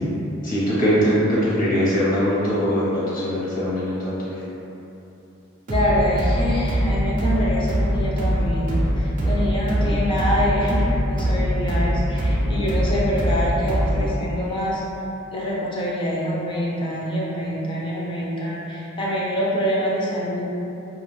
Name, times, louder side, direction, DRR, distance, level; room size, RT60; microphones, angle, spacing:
voice 1, 0.4-4.4, equal, 45° left, -9 dB, 0.8 m, -21 dB
voice 2, 5.7-14.8 15.3-20.5, equal, 25° left, -5 dB, 0.4 m, -25 dB
sound 1, 5.7-14.2, equal, 40° right, 0.4 m, -22 dB
2.4 x 2.3 x 3.1 m, 2.8 s
head